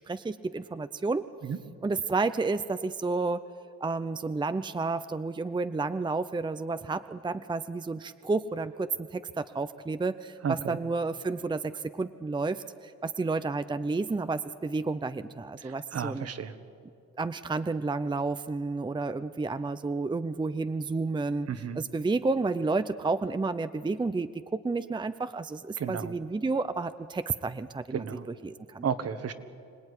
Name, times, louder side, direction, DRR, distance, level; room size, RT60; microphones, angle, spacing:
voice 1, 0.0-1.2 1.8-3.5 3.8-16.3 17.2-21.5 21.8-28.1 28.4-28.8, right 3 dB, 15° right, 11 dB, 0.6 m, -31 dB
voice 2, 10.4-10.8 15.6-16.5 21.5-21.8 25.8-26.1 27.9-28.3 28.8-29.3, right 7 dB, 55° right, 10 dB, 1.6 m, -33 dB
25.5 x 18.0 x 9.9 m, 2.4 s
cardioid pair, 90°, 30 cm